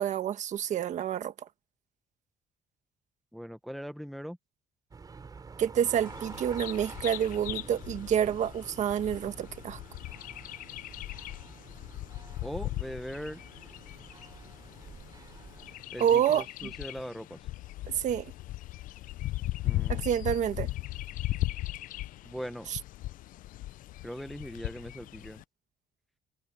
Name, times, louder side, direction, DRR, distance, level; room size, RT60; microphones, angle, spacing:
voice 1, 0.0-1.3 5.6-9.8 16.0-16.7 17.9-18.3 19.9-20.7 22.7-22.8, right 9 dB, 50° right, 1.5 m, -28 dB
voice 2, 3.3-4.4 12.4-13.4 15.9-17.4 19.6-20.1 22.2-22.7 24.0-25.4, equal, ahead, 0.8 m, -40 dB
sound 1, 4.9-15.8, right 5 dB, 25° right, 5.1 m, -48 dB
Bird vocalization bird call bird song, 6.1-25.4, left 16 dB, 65° left, 0.5 m, -38 dB
cardioid pair, 150°, 15 cm